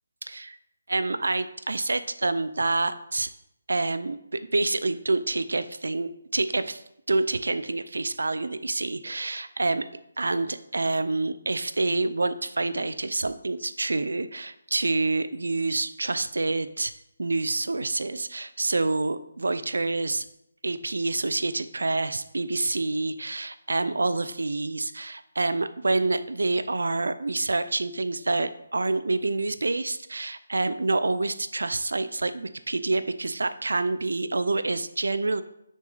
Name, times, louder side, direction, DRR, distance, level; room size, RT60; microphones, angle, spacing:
voice 1, 0.2-0.6 0.9-3.3 3.7-6.8 7.1-9.9 10.2-16.9 17.2-20.2 20.6-35.4, right 2 dB, 85° right, 13 dB, 0.4 m, -27 dB
6.2 x 3.8 x 4.0 m, 0.80 s
hypercardioid pair, 165°, 0 cm